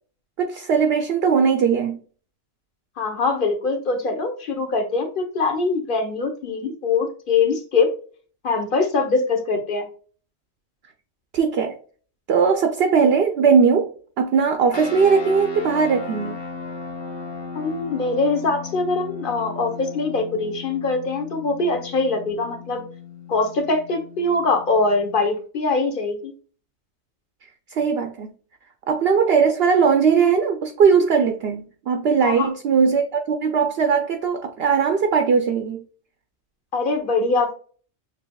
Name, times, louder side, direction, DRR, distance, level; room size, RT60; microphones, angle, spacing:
voice 1, 0.4-2.0 11.3-11.8 12.3-16.4 27.7-28.3 28.9-35.8, right 6 dB, 60° right, 0.7 m, -19 dB
voice 2, 3.0-7.9 8.4-9.9 17.5-22.8 23.3-26.3 32.2-32.5 36.7-37.5, left 3 dB, 45° left, 1.0 m, -23 dB
sound 1, 14.7-25.4, left 4 dB, 25° left, 0.8 m, -36 dB
6.6 x 2.8 x 2.3 m
omnidirectional pair, 1.4 m